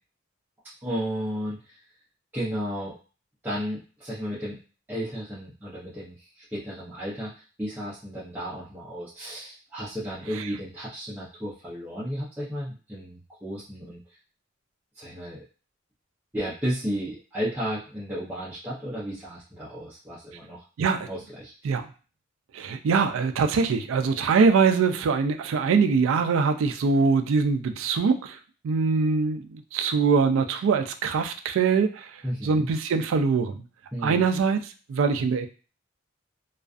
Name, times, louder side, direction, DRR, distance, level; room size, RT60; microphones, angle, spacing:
voice 1, 0.8-1.8 2.3-3.0 3.4-4.6 4.9-14.0 14.9-15.4 16.3-20.6 21.1-21.5 32.2-32.7 33.9-34.3, equal, 10° right, -10 dB, 0.5 m, -33 dB
voice 2, 20.8-21.1 21.6-21.9 22.5-28.4 28.6-33.6 34.0-35.5, right 5 dB, 75° right, 8 dB, 0.3 m, -23 dB
2.4 x 2.3 x 2.4 m, 0.36 s
head